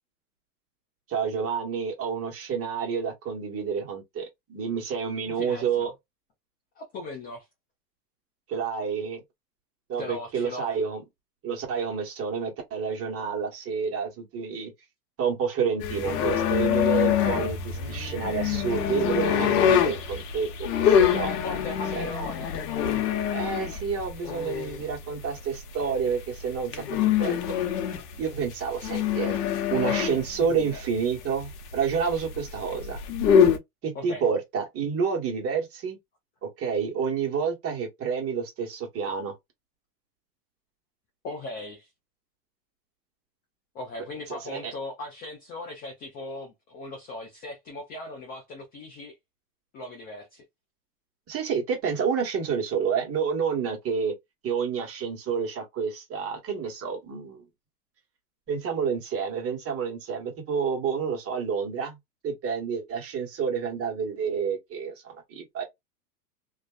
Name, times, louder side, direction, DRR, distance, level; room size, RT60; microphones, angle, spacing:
voice 1, 1.1-5.9 8.5-9.2 9.9-11.0 11.4-14.7 15.2-21.3 21.9-22.1 23.3-27.4 28.2-29.4 29.7-33.0 33.8-36.0 36.4-39.3 44.4-44.7 51.3-54.1 54.4-57.5 58.5-62.0 62.2-65.6, right 6 dB, 30° right, 1.1 m, -29 dB
voice 2, 5.3-5.9 6.8-7.5 10.0-10.7 18.2-18.3 21.2-22.6 30.4-30.7 33.9-34.3 41.2-41.9 43.7-49.2 49.7-50.4, left 2 dB, 20° left, 0.3 m, -38 dB
sound 1, 15.8-33.6, left 8 dB, 75° left, 0.8 m, -25 dB
2.5 x 2.3 x 2.3 m
hypercardioid pair, 115°, 49 cm